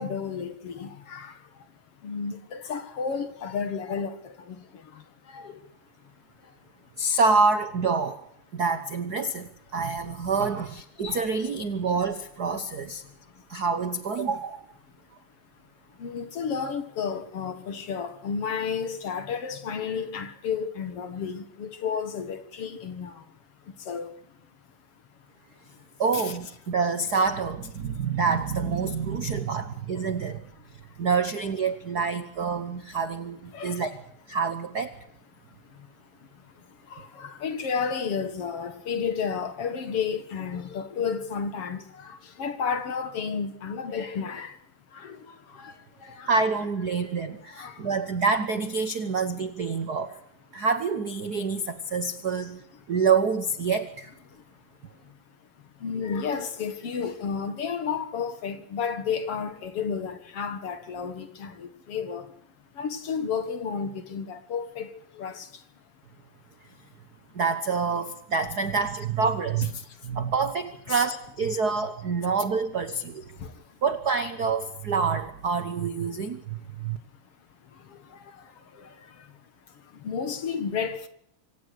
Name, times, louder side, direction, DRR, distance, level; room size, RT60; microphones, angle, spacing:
voice 1, 0.0-1.7 2.0-5.7 6.0-6.1 6.4-6.6 6.8-6.9 13.0-13.5 15.9-24.4 25.6-25.7 26.1-26.4 27.8-28.1 29.4-29.5 30.6-31.1 33.5-33.8 35.5-44.6 44.9-46.3 46.9-47.1 47.5-48.1 54.3-62.3 62.7-65.7 69.8-70.2 70.9-71.0 73.3-73.8 77.6-81.1, left 6 dB, 55° left, 2.4 m, -33 dB
voice 2, 7.0-8.2 8.5-13.0 13.5-14.7 26.0-30.4 31.0-33.9 34.3-35.0 46.3-50.1 50.5-52.6 52.9-54.1 67.3-69.7 70.0-73.2 73.8-77.0, right 4 dB, 60° right, 1.0 m, -27 dB
26.0 x 16.5 x 6.7 m
omnidirectional pair, 3.5 m